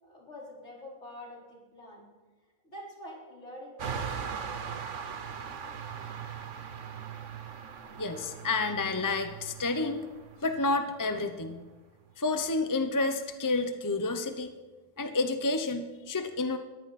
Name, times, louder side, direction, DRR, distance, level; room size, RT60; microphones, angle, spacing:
voice 1, 0.0-2.0 2.6-4.4, left 1 dB, 50° left, -4 dB, 5.0 m, -46 dB
sound 1, 3.8-11.8, right 7 dB, 60° right, 1.3 m, -40 dB
voice 2, 8.0-10.0 10.4-11.6 12.2-14.5 15.0-16.6, left 3 dB, 20° left, 7 dB, 0.6 m, -30 dB
21.0 x 15.0 x 4.3 m, 1.3 s
omnidirectional pair, 1.5 m